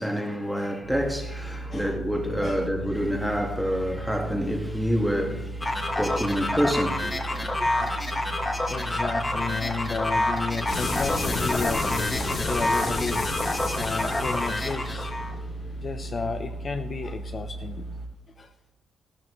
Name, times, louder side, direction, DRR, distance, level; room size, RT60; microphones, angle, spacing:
voice 1, 0.0-7.7, equal, 5° right, 1.7 m, -28 dB
sound 1, 0.8-18.1, right 2 dB, 80° right, 2.6 m, -36 dB
sound 2, 5.6-15.3, left 1 dB, 15° left, 1.5 m, -28 dB
voice 2, 7.3-8.1 8.7-13.3 13.7-15.1 15.8-17.9 18.4-18.5, left 4 dB, 40° left, 0.7 m, -33 dB
sound 3, 10.7-17.1, left 3 dB, 60° left, 2.5 m, -33 dB
16.0 x 12.0 x 3.2 m
cardioid pair, 100°, 0 cm